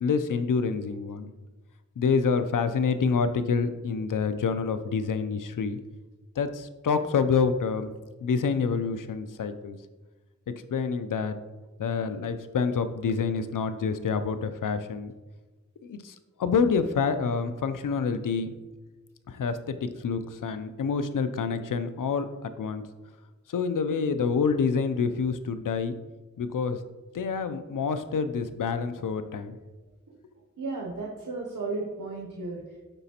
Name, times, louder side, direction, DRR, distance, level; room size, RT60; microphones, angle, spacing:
voice 1, 0.0-1.3 2.0-5.8 6.4-7.9 8.2-9.8 10.5-11.4 11.8-15.1 15.8-18.5 19.3-22.8 23.5-26.0 26.4-26.8 27.1-29.6, left 5 dB, 85° left, 10 dB, 0.5 m, -27 dB
voice 2, 30.6-32.8, right 3 dB, 85° right, -2 dB, 0.8 m, -34 dB
8.9 x 4.0 x 2.8 m, 1.2 s
wide cardioid pair, 40°, 31 cm